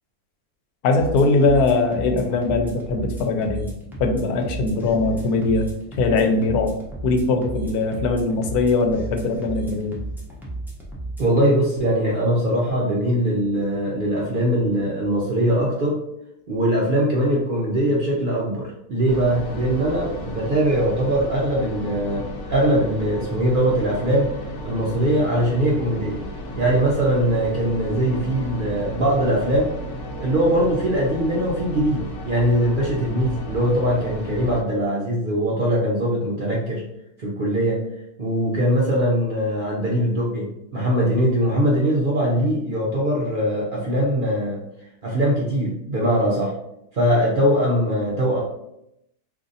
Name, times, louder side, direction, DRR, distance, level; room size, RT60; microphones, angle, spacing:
voice 1, 0.8-3.7 4.0-5.7 6.0-6.8 7.0-10.0, left 3 dB, 85° left, 5 dB, 1.1 m, -21 dB
sound 1, 1.0-11.4, right 2 dB, 5° right, 0.3 m, -34 dB
voice 2, 11.2-16.0 16.5-24.3 24.6-26.2 26.6-29.7 30.2-36.8 37.2-37.8 38.2-44.6 45.0-46.5 46.9-48.4, right 1 dB, 65° right, -4 dB, 0.5 m, -21 dB
sound 2, 19.1-34.6, equal, 60° left, 0.9 m, -34 dB
2.7 x 2.5 x 3.9 m, 0.82 s
omnidirectional pair, 1.6 m